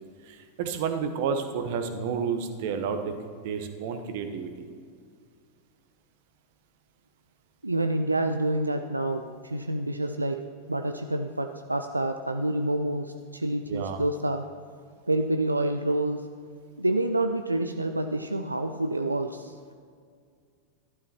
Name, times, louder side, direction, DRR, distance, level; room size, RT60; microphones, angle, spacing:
voice 1, 0.2-3.1 3.4-4.7 13.7-14.0, right 6 dB, 50° right, 7 dB, 0.9 m, -30 dB
voice 2, 7.6-10.4 10.7-14.5 15.1-16.2 16.8-19.5, right 1 dB, 85° right, 7 dB, 0.4 m, -28 dB
13.0 x 12.0 x 3.0 m, 2.2 s
figure-of-eight pair, 90°, 0 cm